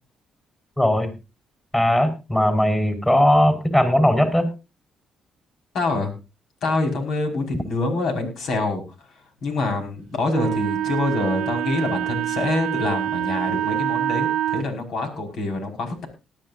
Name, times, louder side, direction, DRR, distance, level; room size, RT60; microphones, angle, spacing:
voice 1, 0.8-1.1 1.7-4.5, left 1 dB, 15° left, 8 dB, 4.6 m, -18 dB
voice 2, 5.7-6.1 6.6-8.8 9.4-16.1, left 2 dB, 70° left, 5 dB, 5.0 m, -25 dB
Wind instrument woodwind instrument, 10.3-14.7, right 12 dB, 85° right, 0.8 m, -25 dB
19.5 x 12.0 x 2.6 m, 0.28 s
cardioid pair, 90°, 0 cm